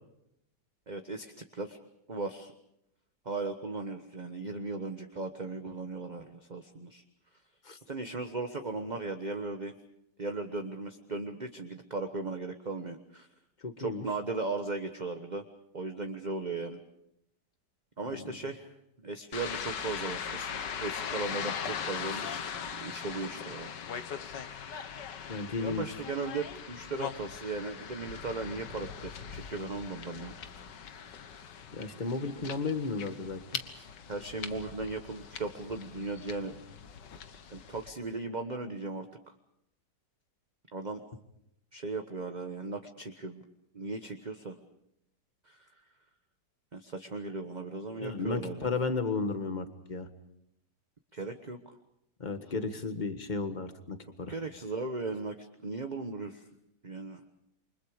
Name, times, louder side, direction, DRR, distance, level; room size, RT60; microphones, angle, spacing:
voice 1, 0.9-1.8 2.1-2.5 3.2-7.0 7.9-9.7 10.2-13.3 13.8-15.4 15.7-16.8 18.0-18.7 19.0-23.7 25.6-30.3 33.7-36.5 37.5-39.4 40.7-41.0 41.7-43.4 43.7-44.6 45.4-45.7 46.7-48.7 51.1-51.7 54.3-56.5 56.8-57.2, right 3 dB, 30° right, 6 dB, 1.2 m, -37 dB
voice 2, 13.6-14.1 18.1-18.3 25.3-25.8 31.7-33.4 47.9-50.1 52.2-54.3, left 4 dB, 25° left, 8 dB, 1.7 m, -34 dB
sound 1, 19.3-37.9, left 7 dB, 80° left, 1.9 m, -40 dB
28.5 x 25.0 x 5.0 m, 0.80 s
omnidirectional pair, 1.9 m